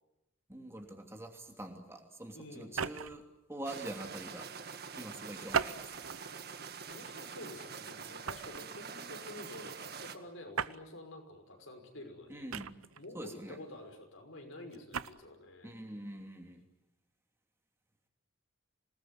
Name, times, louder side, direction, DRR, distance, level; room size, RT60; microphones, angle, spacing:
voice 1, 0.5-3.2 3.5-4.4 5.0-6.1 12.3-12.7 13.1-13.6 15.6-16.6, right 1 dB, 10° right, 3 dB, 2.9 m, -45 dB
voice 2, 2.3-3.0 6.9-12.5 13.0-15.7, left 1 dB, 70° left, 4 dB, 5.9 m, -49 dB
sound 1, 2.6-3.3 5.5-6.3 6.9-7.1 8.3-8.6 10.5-10.8 12.5-13.1 14.7-15.1, right 6 dB, 85° right, 0.9 m, -36 dB
sound 2, 3.6-10.2, right 6 dB, 50° right, 1.7 m, -45 dB
27.0 x 20.0 x 9.5 m, 0.90 s
head